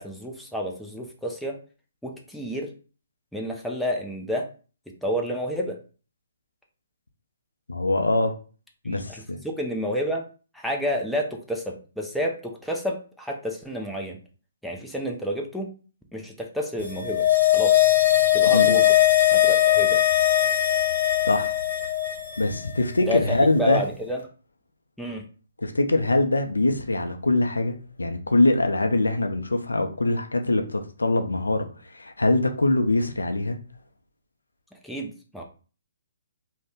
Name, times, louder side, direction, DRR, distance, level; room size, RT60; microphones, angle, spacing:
voice 1, 0.0-1.6 2.0-2.7 3.3-4.5 5.0-5.8 8.8-10.2 10.5-14.2 14.6-15.7 16.1-17.2 17.5-17.9 18.3-18.9 19.3-20.0 23.1-23.2 23.6-24.2 25.0-25.2 34.8-35.4, equal, ahead, 0.5 m, -30 dB
voice 2, 7.7-8.3 8.8-9.4 18.5-18.8 21.2-21.6 22.4-23.8 25.6-31.7 31.9-33.6, left 2 dB, 90° left, 0.4 m, -23 dB
sound 1, 16.9-22.4 22.6-22.7, left 13 dB, 60° left, 0.9 m, -20 dB
2.6 x 2.1 x 3.5 m
figure-of-eight pair, 135°, 0 cm